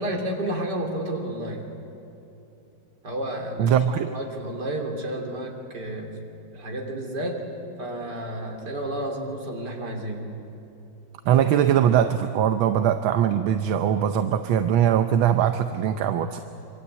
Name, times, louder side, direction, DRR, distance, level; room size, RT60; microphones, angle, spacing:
voice 1, 0.0-1.7 3.0-6.2 6.5-7.4 7.8-10.3, right 1 dB, 55° right, 1 dB, 3.8 m, -31 dB
voice 2, 3.6-4.1 11.3-16.4, right 9 dB, 80° right, 8 dB, 1.6 m, -21 dB
26.5 x 24.5 x 8.2 m, 2.8 s
omnidirectional pair, 2.2 m